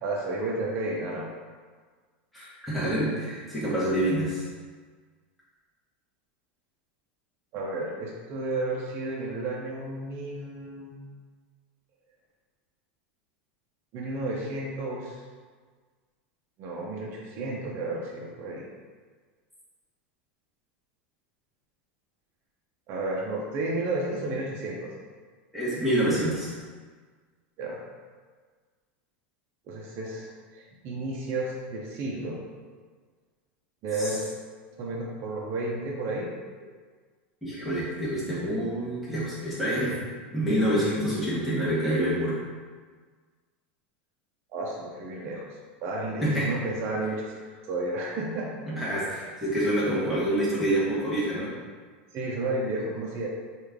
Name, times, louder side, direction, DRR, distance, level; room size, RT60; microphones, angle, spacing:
voice 1, 0.0-1.3 7.5-11.0 13.9-15.2 16.6-18.6 22.9-24.9 27.6-27.8 29.7-32.4 33.8-34.3 34.8-36.3 44.5-45.4 45.8-47.3 47.7-48.7 52.1-53.3, right 2 dB, 45° right, -3 dB, 0.5 m, -32 dB
voice 2, 2.3-4.4 25.5-26.5 34.0-34.2 37.4-39.9 40.3-42.4 46.2-46.5 48.7-51.5, right 1 dB, ahead, -11 dB, 1.1 m, -27 dB
3.2 x 2.4 x 3.5 m, 1.5 s
supercardioid pair, 120°, 6 cm